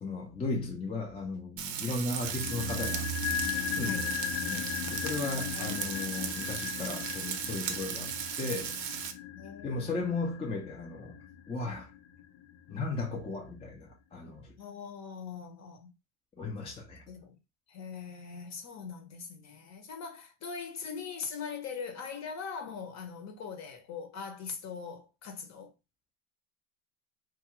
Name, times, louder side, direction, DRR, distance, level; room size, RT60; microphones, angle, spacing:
voice 1, 0.0-3.1 3.7-9.1 9.6-11.2 11.5-11.9 12.7-14.5 16.4-17.0, left 3 dB, 15° left, 0.6 m, -36 dB
Frying (food), 1.6-9.1, right 8 dB, 45° right, 0.6 m, -37 dB
sound 1, 2.2-12.4 12.7-12.8, left 7 dB, 60° left, 0.6 m, -37 dB
voice 2, 9.3-10.1 14.6-15.9 17.1-17.4 17.7-25.7, left 6 dB, 40° left, 0.9 m, -41 dB
2.6 x 2.4 x 3.0 m
supercardioid pair, 110°, 42 cm